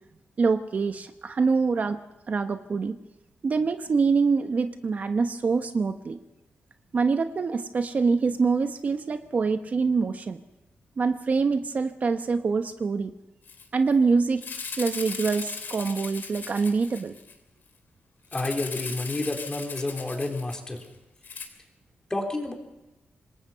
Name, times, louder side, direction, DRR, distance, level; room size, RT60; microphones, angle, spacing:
voice 1, 0.4-2.0 2.3-3.0 3.4-6.2 6.9-10.4 11.0-13.1 13.7-14.4 14.8-17.2, right 4 dB, 45° right, 8 dB, 0.9 m, -25 dB
Rattle (instrument), 13.5-13.6 13.9-14.0 14.4-17.3 18.3-20.9 21.2-21.5, left 5 dB, 60° left, 3.1 m, -38 dB
voice 2, 18.3-20.8 22.1-22.5, left 2 dB, 20° left, 2 dB, 3.7 m, -30 dB
26.5 x 20.5 x 5.6 m, 1.0 s
wide cardioid pair, 140°, 4 cm